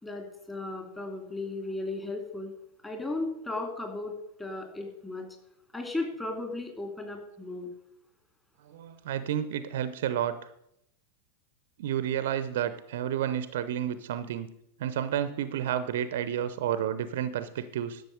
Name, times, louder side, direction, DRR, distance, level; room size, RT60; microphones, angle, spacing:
voice 1, 0.0-2.5 2.8-4.1 4.4-5.3 5.7-7.7, left 2 dB, 10° left, 3 dB, 2.7 m, -35 dB
voice 2, 8.7-10.4 11.8-14.5 14.8-18.0, right 10 dB, 55° right, 13 dB, 0.6 m, -31 dB
11.5 x 6.8 x 6.5 m, 0.77 s
figure-of-eight pair, 90°, 0 cm